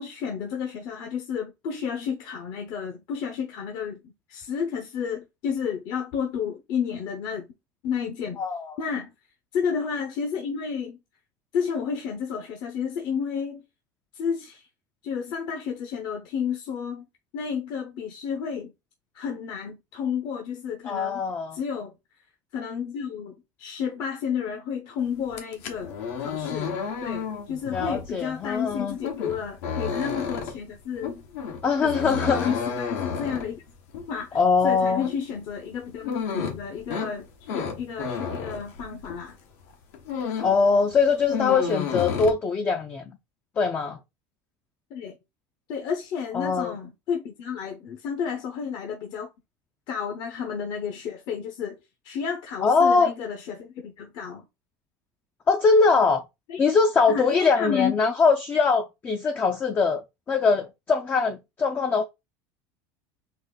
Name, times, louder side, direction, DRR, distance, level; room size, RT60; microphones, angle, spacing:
voice 1, 0.0-7.5 7.8-8.4 8.8-9.1 9.5-11.0 11.5-13.6 14.1-14.7 15.0-17.0 17.3-18.7 19.1-21.2 21.5-21.9 22.5-25.9 26.2-31.2 31.8-33.6 34.1-39.4 44.9-45.1 45.7-49.3 49.9-51.8 52.0-54.4 56.5-56.6 57.1-58.0, left 7 dB, 50° left, 0.7 m, -31 dB
voice 2, 8.4-8.7 20.9-21.6 27.7-29.0 31.6-32.5 34.3-35.1 40.4-43.0 43.6-44.0 46.3-46.8 52.6-53.1 55.5-56.2 56.6-60.0 60.3-62.0, left 4 dB, 20° left, 0.4 m, -22 dB
sound 1, 25.2-39.3 39.7-40.6 40.9-42.3, left 6 dB, 80° left, 1.1 m, -32 dB
4.0 x 2.9 x 3.9 m
cardioid pair, 150°, 9 cm